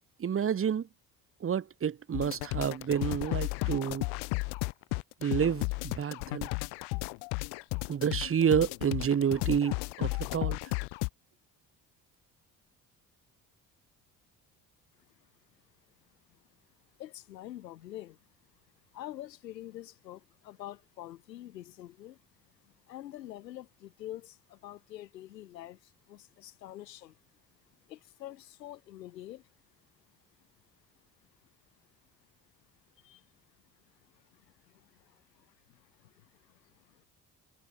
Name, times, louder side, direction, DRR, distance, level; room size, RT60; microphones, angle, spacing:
voice 1, 0.2-0.9 1.4-4.1 5.2-6.5 7.9-10.6, right 8 dB, 25° right, 0.9 m, -29 dB
sound 1, 2.1-11.1, left 29 dB, 55° left, 0.5 m, -34 dB
voice 2, 17.0-18.2 18.9-22.2 22.6-27.2 27.9-29.4 33.0-33.2 34.3-34.4 34.7-37.1, left 13 dB, 85° left, 1.5 m, -46 dB
figure-of-eight pair, 50°, 49 cm